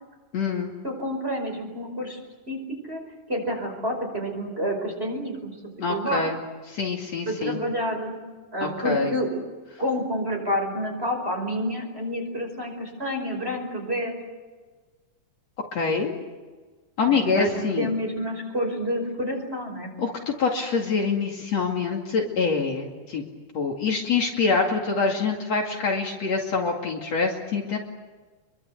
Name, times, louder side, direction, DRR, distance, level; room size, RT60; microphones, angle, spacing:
voice 1, 0.3-0.7 5.8-6.4 6.7-7.6 8.6-9.1 15.7-16.1 17.0-17.9 20.0-23.2 23.5-27.8, left 4 dB, 55° left, 1 dB, 3.4 m, -25 dB
voice 2, 0.8-2.2 2.5-2.6 2.9-3.0 3.3-5.6 5.9-6.2 7.3-8.2 8.5-9.3 9.8-14.2 17.1-19.9, equal, 15° right, 2 dB, 5.5 m, -28 dB
27.0 x 23.5 x 8.2 m, 1.3 s
omnidirectional pair, 3.7 m